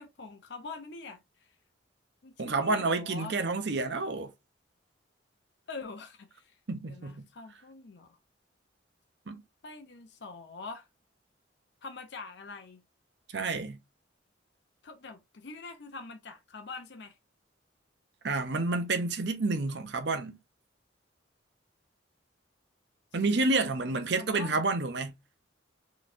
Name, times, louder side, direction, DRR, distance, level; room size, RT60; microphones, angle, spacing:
voice 1, 0.0-1.5 2.2-3.4 5.7-6.6 6.8-8.2 9.6-10.9 11.8-12.8 14.8-17.2 23.2-24.6, left 4 dB, 60° left, 0.6 m, -44 dB
voice 2, 2.4-4.3 6.7-7.3 9.3-9.4 13.3-13.8 18.2-20.4 23.1-25.1, right 3 dB, 60° right, 0.7 m, -29 dB
3.9 x 3.1 x 2.5 m
head